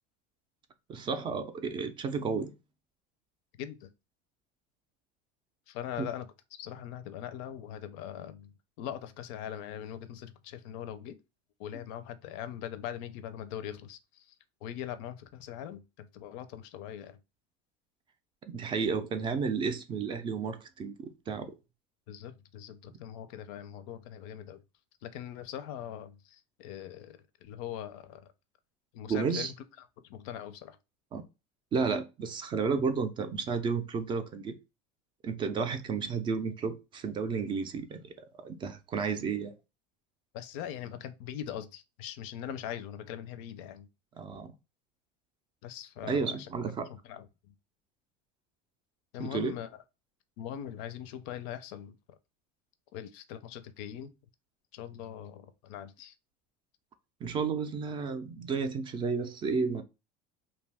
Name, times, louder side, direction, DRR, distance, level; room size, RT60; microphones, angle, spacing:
voice 1, 0.9-2.5 6.0-6.1 18.5-21.0 21.3-21.5 29.1-29.5 31.1-31.2 31.7-34.6 35.2-38.1 38.4-39.5 44.2-44.5 46.0-46.9 49.2-49.5 57.2-59.8, right 5 dB, 25° right, 0.4 m, -32 dB
voice 2, 3.6-3.9 5.7-6.3 6.6-11.2 11.6-14.4 14.6-17.2 22.1-24.6 25.0-28.3 28.9-30.8 40.3-43.9 45.6-46.5 46.9-47.5 49.1-49.8 50.4-52.0 52.9-54.1 54.7-56.1, left 10 dB, 70° left, 0.4 m, -41 dB
2.6 x 2.3 x 3.3 m
supercardioid pair, 135°, 18 cm